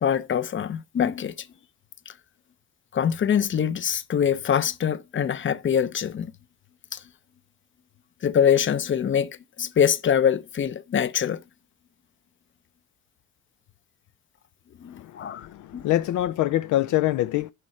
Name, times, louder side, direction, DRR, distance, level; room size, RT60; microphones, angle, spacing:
voice 1, 0.0-1.5 2.9-6.3 6.9-7.0 8.2-11.4 14.8-15.5 15.7-15.9, left 8 dB, 40° left, 0.7 m, -24 dB
voice 2, 15.0-17.5, left 14 dB, 75° left, 0.5 m, -25 dB
11.0 x 5.4 x 4.3 m
cardioid pair, 90°, 30 cm